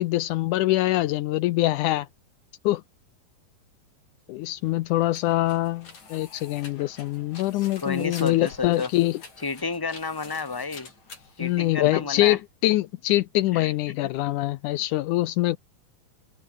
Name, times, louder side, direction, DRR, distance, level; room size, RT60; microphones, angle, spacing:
voice 1, 0.0-2.1 2.6-2.8 4.3-9.2 11.4-15.6, left 16 dB, 80° left, 1.8 m, -24 dB
sound 1, 4.4-12.2, left 4 dB, 50° left, 6.4 m, -47 dB
voice 2, 7.5-8.9 9.4-10.9 11.4-12.4 13.5-13.7, left 4 dB, 10° left, 1.0 m, -31 dB
omnidirectional pair, 4.2 m